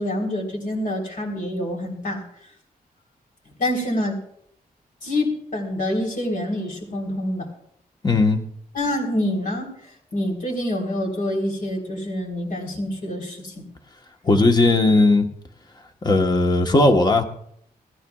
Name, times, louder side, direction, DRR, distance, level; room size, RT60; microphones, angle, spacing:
voice 1, 0.0-2.2 3.6-4.2 5.0-7.5 8.7-9.8 10.1-13.7, left 1 dB, 60° left, 0 dB, 3.6 m, -26 dB
voice 2, 8.0-8.4 14.2-15.3 16.0-17.2, left 2 dB, 25° left, 4 dB, 1.1 m, -17 dB
19.5 x 14.0 x 2.3 m, 0.69 s
wide cardioid pair, 120°, 16 cm